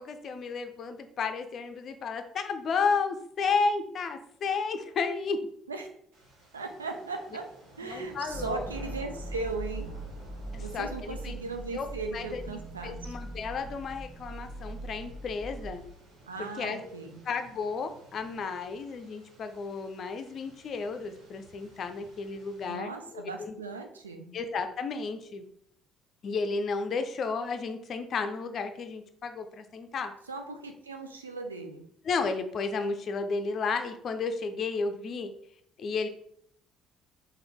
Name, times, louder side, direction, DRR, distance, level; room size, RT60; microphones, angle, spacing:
voice 1, 0.0-5.4 7.8-8.6 10.5-11.4 11.7-15.8 16.4-17.0 17.3-23.5 24.3-25.4 26.2-30.1 32.0-35.3 35.8-36.1, left 4 dB, 50° left, 8 dB, 0.4 m, -33 dB
sound 1, 6.1-22.7, right 1 dB, 65° right, 1.0 m, -53 dB
voice 2, 6.5-7.5 7.8-9.9 10.6-13.1 16.2-17.2 22.7-24.3 30.3-31.8, right 3 dB, 85° right, 5 dB, 0.4 m, -38 dB
sound 2, 8.3-15.8, right 1 dB, 45° right, 1.2 m, -41 dB
3.8 x 2.9 x 3.3 m, 0.68 s
figure-of-eight pair, 50°, 0 cm